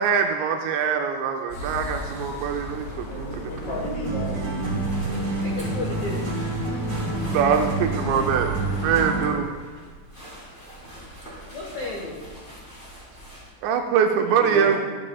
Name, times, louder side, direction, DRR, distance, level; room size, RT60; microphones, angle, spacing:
voice 1, 0.0-3.1 7.3-8.5 8.8-9.6 13.6-14.8, right 7 dB, 80° right, 4 dB, 2.7 m, -23 dB
sound 1, 1.5-9.3, right 1 dB, 60° left, 4.8 m, -35 dB
voice 2, 2.9-4.8 9.8-10.0 14.4-14.8, left 1 dB, 40° left, -6 dB, 3.7 m, -33 dB
sound 2, 4.0-9.4, right 2 dB, 50° right, 2.5 m, -28 dB
sound 3, 4.8-13.5, equal, 15° left, 2.4 m, -44 dB
voice 3, 5.2-6.3 11.5-12.4, left 3 dB, 75° left, -3 dB, 1.6 m, -34 dB
14.0 x 9.8 x 2.3 m, 1.5 s
omnidirectional pair, 5.3 m